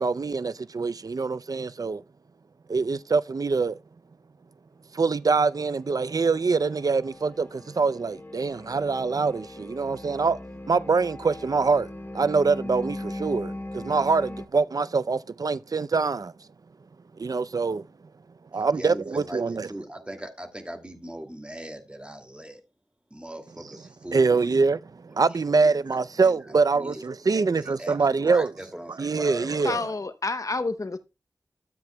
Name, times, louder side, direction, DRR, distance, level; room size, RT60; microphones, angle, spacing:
voice 1, 0.0-2.0 2.7-3.8 4.9-10.4 10.7-11.9 12.1-16.3 17.2-17.9 18.5-19.7 24.1-28.5 29.0-29.8, right 4 dB, 60° right, 0.5 m, -24 dB
sound 1, 5.9-14.5, left 1 dB, 30° left, 0.9 m, -39 dB
voice 2, 18.5-22.6 23.1-24.6 25.9-30.0, right 1 dB, 15° right, 2.3 m, -40 dB
voice 3, 29.6-31.0, left 3 dB, 50° left, 0.9 m, -29 dB
13.5 x 7.7 x 2.2 m
wide cardioid pair, 65°, 7 cm